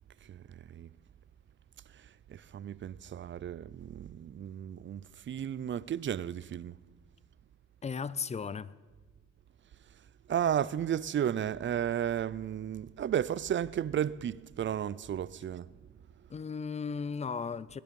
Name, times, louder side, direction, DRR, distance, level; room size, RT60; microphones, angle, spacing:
voice 1, 2.3-6.8 10.3-15.7, right 9 dB, 40° right, 0.5 m, -33 dB
voice 2, 7.8-8.7 16.3-17.8, left 5 dB, 20° left, 0.5 m, -36 dB
21.0 x 10.0 x 5.3 m
cardioid pair, 90°, 30 cm